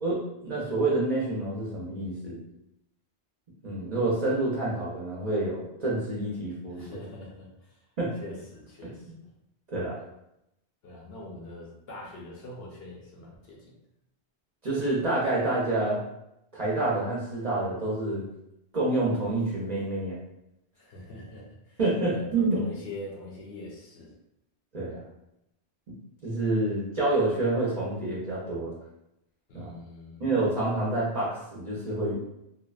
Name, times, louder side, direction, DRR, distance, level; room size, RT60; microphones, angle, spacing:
voice 1, 0.0-2.4 3.6-7.0 8.0-8.1 9.7-9.9 14.6-16.0 16.5-18.3 18.7-20.2 21.8-22.6 24.7-25.0 26.2-28.8 29.5-29.7 30.2-32.1, right 2 dB, 45° right, -7 dB, 0.6 m, -28 dB
voice 2, 6.7-7.8 8.2-9.1 10.8-13.6 20.8-21.8 22.1-24.1 29.5-30.2, left 1 dB, 65° left, -3 dB, 0.9 m, -43 dB
2.7 x 2.1 x 2.3 m, 0.84 s
omnidirectional pair, 1.1 m